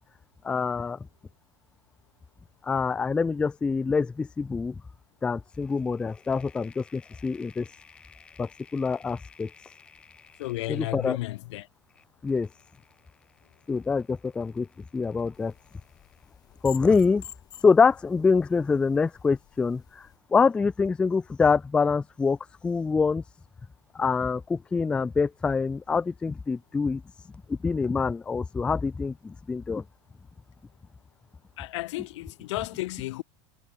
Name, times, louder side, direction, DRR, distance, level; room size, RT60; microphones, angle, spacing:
voice 1, 0.4-1.0 2.6-4.7 5.2-7.7 8.4-9.5 10.7-11.2 12.2-12.5 13.7-14.7 14.9-15.5 16.6-17.2 17.6-22.4 22.6-23.2 23.9-27.0 27.5-29.8, left 5 dB, 5° left, 0.4 m, -25 dB
voice 2, 10.4-11.7 31.6-33.2, left 18 dB, 65° left, 0.7 m, -33 dB
sound 1, 15.3-20.2, left 11 dB, 25° left, 2.2 m, -49 dB
supercardioid pair, 170°, 16 cm